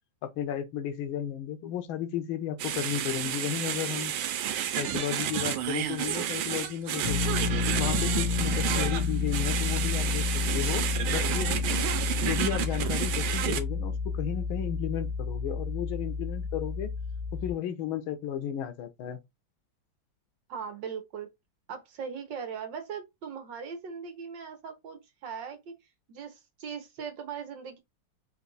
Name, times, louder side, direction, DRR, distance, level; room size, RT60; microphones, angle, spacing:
voice 1, 0.2-4.1 4.8-7.2 7.8-16.9 17.3-19.2, left 9 dB, 90° left, 1.6 m, -34 dB
sound 1, 2.6-13.6, right 10 dB, 90° right, 1.5 m, -31 dB
sound 2, 7.0-17.5, left 5 dB, 65° left, 1.3 m, -30 dB
voice 2, 20.5-21.3 21.7-25.7 26.1-27.8, right 6 dB, 65° right, 1.6 m, -39 dB
4.4 x 2.6 x 3.9 m
omnidirectional pair, 2.2 m